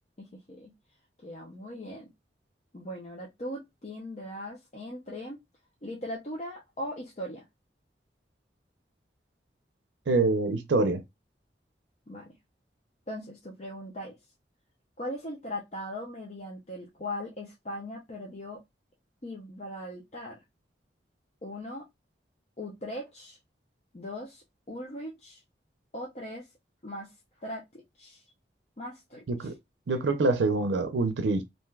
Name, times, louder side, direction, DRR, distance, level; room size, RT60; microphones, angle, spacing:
voice 1, 0.2-0.7 1.2-2.1 2.7-5.4 5.8-7.5 12.1-12.3 13.1-14.3 15.0-18.6 19.2-20.4 21.4-21.8 22.6-23.4 23.9-25.4 25.9-26.5 26.8-28.2 28.8-29.5, left 1 dB, 40° left, 0.6 m, -39 dB
voice 2, 10.1-11.0 29.3-29.5 29.9-31.4, right 3 dB, 90° right, 0.5 m, -25 dB
3.2 x 2.6 x 2.2 m
head